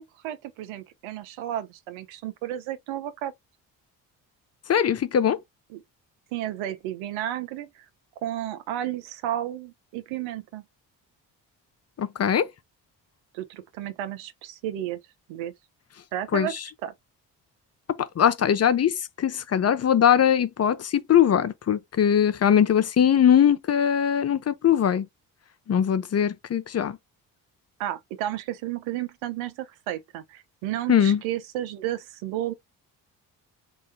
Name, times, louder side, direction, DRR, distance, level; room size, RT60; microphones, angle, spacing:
voice 1, 0.0-3.3 5.7-5.8 6.3-7.8 8.2-10.6 13.3-15.0 15.3-15.5 16.1-16.9 27.8-32.5, right 12 dB, 65° right, 0.8 m, -32 dB
voice 2, 4.7-5.4 12.0-12.5 16.3-16.5 18.2-25.1 25.7-27.0 30.9-31.2, left 9 dB, 30° left, 0.6 m, -21 dB
3.9 x 2.5 x 3.6 m
hypercardioid pair, 45°, 50 cm